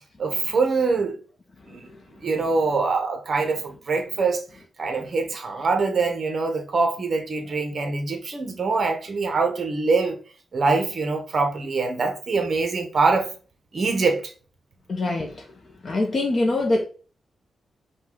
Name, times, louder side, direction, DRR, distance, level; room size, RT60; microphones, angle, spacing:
voice 1, 0.2-1.2 1.7-4.4 4.8-10.2 10.5-13.3 13.7-14.2, right 4 dB, 40° right, 0.9 m, -24 dB
voice 2, 14.9-15.4 15.8-16.8, left 2 dB, 35° left, 0.6 m, -23 dB
5.3 x 2.3 x 3.7 m
wide cardioid pair, 155°, 0 cm